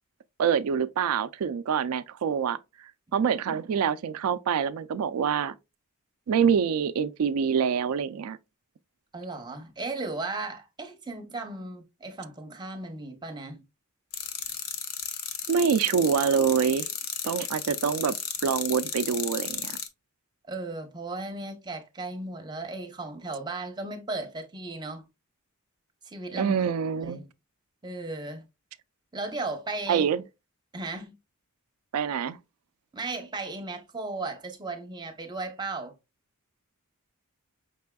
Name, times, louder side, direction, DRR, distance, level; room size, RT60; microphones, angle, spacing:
voice 1, 0.4-2.6 3.1-5.5 6.3-8.4 15.5-16.9 17.2-18.1 18.4-19.8 26.3-27.2 29.9-30.2 31.9-32.4, right 7 dB, 80° right, 0.3 m, -25 dB
voice 2, 9.1-13.6 20.5-25.1 26.0-26.5 27.0-27.3 27.8-28.4 29.1-30.1 30.7-31.2 32.9-35.9, right 2 dB, 20° right, 0.7 m, -36 dB
sound 1, 14.1-19.9, left 7 dB, 80° left, 0.8 m, -34 dB
5.4 x 3.4 x 2.2 m
head